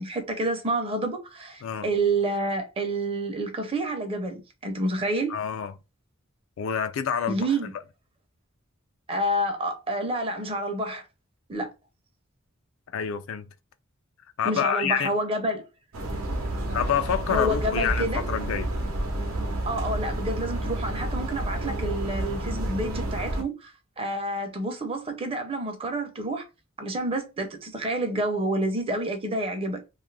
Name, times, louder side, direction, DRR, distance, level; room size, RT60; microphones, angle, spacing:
voice 1, 0.0-5.3 7.3-7.7 9.1-11.0 11.5-11.7 14.4-15.7 17.3-18.2 19.6-26.4 26.8-29.8, right 1 dB, 25° right, 0.5 m, -28 dB
voice 2, 5.3-5.7 6.6-7.5 12.9-13.5 14.4-15.1 16.7-18.7, left 8 dB, 75° left, 0.4 m, -27 dB
sound 1, 15.9-23.4, right 1 dB, 85° right, 0.7 m, -30 dB
2.5 x 2.4 x 3.2 m
head